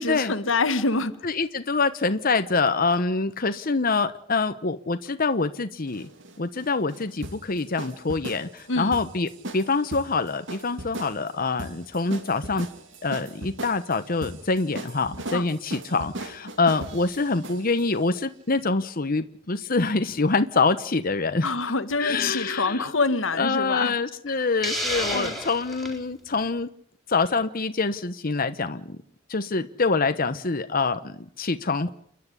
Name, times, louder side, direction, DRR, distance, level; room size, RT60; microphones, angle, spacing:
voice 1, 0.0-1.2 8.7-8.9 15.3-15.4 21.4-23.9 25.1-25.4, left 3 dB, 85° left, 1.4 m, -26 dB
voice 2, 1.2-6.1 6.4-12.7 13.0-21.5 22.0-22.9 23.4-26.7 27.1-29.0 29.3-31.9, left 3 dB, 50° left, 1.0 m, -25 dB
sound 1, 5.9-17.9, right 1 dB, 70° right, 2.5 m, -38 dB
Hiss, 24.6-26.0, equal, ahead, 4.2 m, -30 dB
30.0 x 10.5 x 9.9 m
head